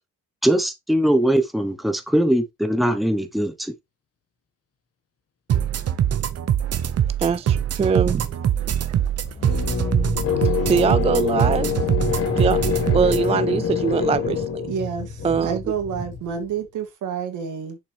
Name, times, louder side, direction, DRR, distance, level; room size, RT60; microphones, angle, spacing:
voice 1, 0.4-3.7, right 1 dB, ahead, 1.1 m, -21 dB
sound 1, 5.5-13.3, right 9 dB, 55° right, 0.9 m, -23 dB
voice 2, 7.2-8.3 8.8-9.0 10.4-11.7 12.4-14.7 15.2-15.6, right 6 dB, 20° right, 0.3 m, -23 dB
sound 2, 8.8-16.5, left 7 dB, 50° left, 1.8 m, -26 dB
voice 3, 14.7-17.8, right 7 dB, 80° right, 2.5 m, -29 dB
6.7 x 5.5 x 3.4 m
cardioid pair, 90°, 30 cm